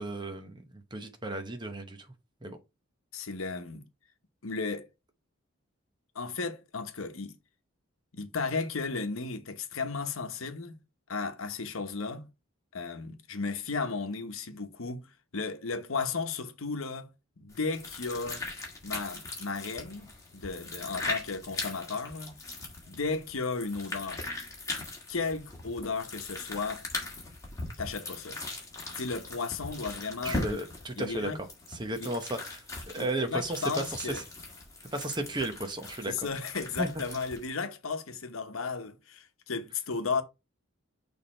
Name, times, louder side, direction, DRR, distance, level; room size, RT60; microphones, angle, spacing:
voice 1, 0.0-2.1 2.4-2.6 30.2-34.2 34.9-36.3 36.8-36.9, right 2 dB, 20° right, 0.9 m, -34 dB
voice 2, 3.1-3.9 4.4-4.9 6.1-7.4 8.1-10.8 11.1-12.3 12.7-15.1 15.3-17.1 17.4-18.4 18.8-22.4 22.9-24.3 25.1-26.9 27.8-28.4 29.0-30.6 31.0-31.4 32.0-32.1 33.0-34.2 36.1-40.2, left 4 dB, 85° left, 1.0 m, -34 dB
sound 1, 17.5-37.5, left 2 dB, 15° left, 1.8 m, -40 dB
6.5 x 3.5 x 4.3 m
head